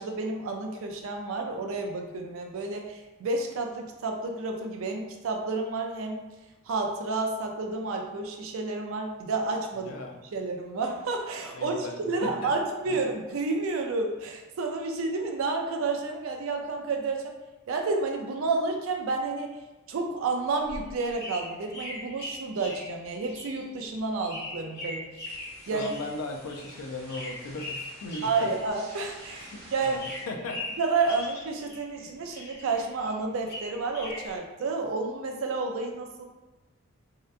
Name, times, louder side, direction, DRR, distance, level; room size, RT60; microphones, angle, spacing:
voice 1, 0.0-6.2 6.7-9.9 10.3-17.3 17.7-19.5 19.9-25.3 25.7-25.9 28.2-30.0 30.8-36.2, right 3 dB, 65° right, 3 dB, 0.4 m, -30 dB
voice 2, 9.8-10.2 11.6-12.5 12.9-13.0 25.6-28.5 29.3-30.8 32.0-32.1, left 2 dB, 70° left, 3 dB, 0.4 m, -38 dB
sound 1, 20.5-29.5 29.8-32.0 32.3-34.4, left 1 dB, 45° left, 0.7 m, -41 dB
sound 2, 25.2-30.3, right 1 dB, 50° right, 0.8 m, -50 dB
2.7 x 2.2 x 2.4 m, 1.1 s
head